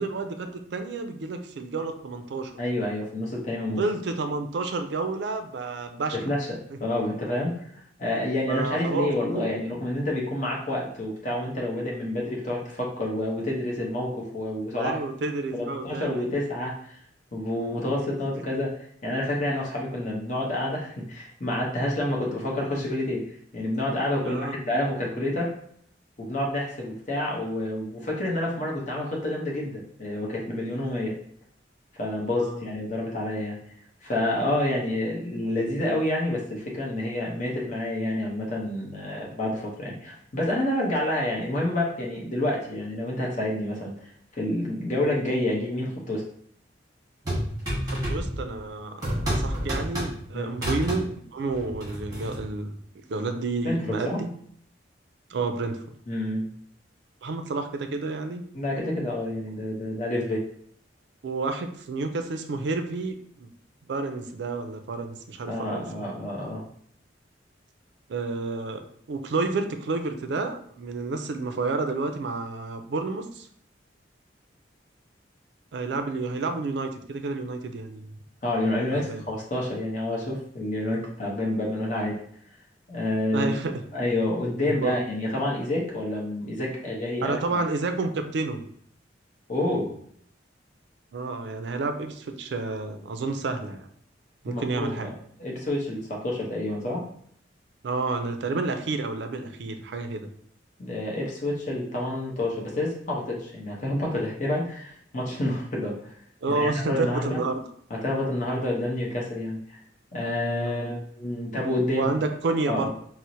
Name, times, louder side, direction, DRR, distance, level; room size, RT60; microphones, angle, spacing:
voice 1, 0.0-2.5 3.8-6.2 8.5-9.5 14.8-16.3 24.2-24.6 32.4-32.6 34.7-34.8 47.8-49.0 49.3-52.7 53.1-54.3 55.3-55.8 57.2-58.4 61.2-63.5 63.9-66.1 68.1-68.8 69.1-73.5 75.7-78.2 78.9-79.2 83.3-83.8 84.7-85.0 87.2-88.6 91.1-93.9 94.4-95.1 97.8-100.3 106.4-107.6 110.6-110.8 111.9-112.9, right 3 dB, 65° right, 7 dB, 0.4 m, -30 dB
voice 2, 2.6-3.8 6.2-6.5 6.8-7.5 8.0-15.0 15.5-17.0 17.3-23.2 23.5-25.5 26.2-31.1 32.0-33.6 34.0-43.9 44.3-46.2 50.3-50.5 53.6-54.2 56.1-56.4 58.5-60.4 65.5-66.6 78.4-82.2 82.9-83.5 83.9-87.4 89.5-89.9 94.5-95.1 95.4-97.0 100.8-106.0 106.5-107.4 108.0-109.8 110.1-112.1 112.7-112.9, left 1 dB, 40° left, -3 dB, 0.7 m, -28 dB
sound 1, 47.2-48.6 49.0-50.2 50.5-51.0 51.5-52.4, equal, 20° right, 1.2 m, -29 dB
4.3 x 2.0 x 2.6 m, 0.63 s
head